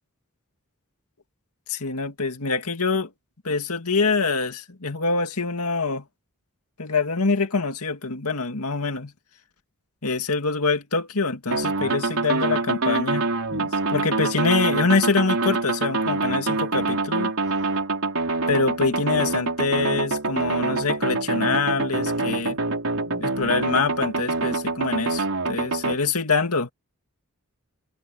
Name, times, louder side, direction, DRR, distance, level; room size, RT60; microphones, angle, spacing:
voice 1, 1.7-3.1 3.4-6.0 6.8-9.1 10.0-17.3 18.5-22.6 23.1-26.7, left 4 dB, 85° left, 2.2 m, -25 dB
sound 1, 11.5-26.0, right 3 dB, 70° right, 4.4 m, -25 dB
head